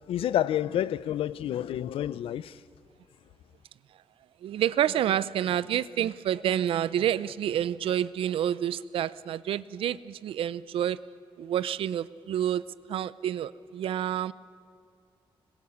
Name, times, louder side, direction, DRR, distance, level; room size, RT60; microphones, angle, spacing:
voice 1, 0.0-2.6, left 11 dB, 90° left, 0.6 m, -29 dB
voice 2, 4.4-11.0 11.4-12.6 12.9-14.3, right 10 dB, 80° right, 0.6 m, -28 dB
25.5 x 21.0 x 7.1 m
wide cardioid pair, 150°, 9 cm